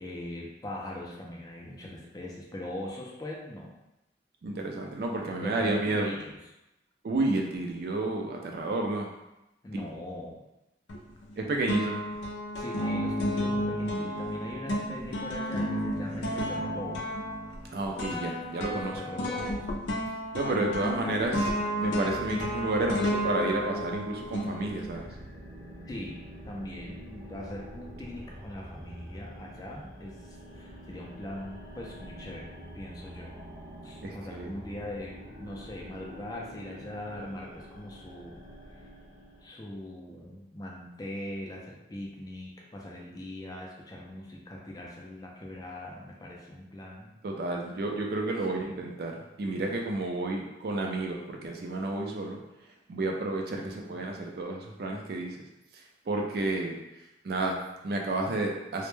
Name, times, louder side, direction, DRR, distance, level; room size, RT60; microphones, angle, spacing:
voice 1, 0.0-3.7 5.4-6.4 9.6-10.4 12.6-17.0 18.7-19.6 20.4-20.9 25.9-33.4 33.8-38.4 38.7-38.8 39.4-47.1 48.4-48.7 53.6-54.0, left 1 dB, 20° left, -2 dB, 0.3 m, -41 dB
voice 2, 4.4-6.1 7.0-9.1 9.7-9.8 11.4-12.0 17.7-19.0 20.3-21.5 21.8-25.1 34.0-34.5 47.2-52.4 52.9-55.4 56.1-56.8 57.2-58.9, right 2 dB, 55° right, 1 dB, 0.3 m, -31 dB
sound 1, 10.9-11.4 11.7-25.1, equal, 80° left, 0.4 m, -32 dB
sound 2, 22.0-39.5, equal, 15° right, 0.6 m, -46 dB
2.1 x 2.1 x 3.0 m, 0.93 s
head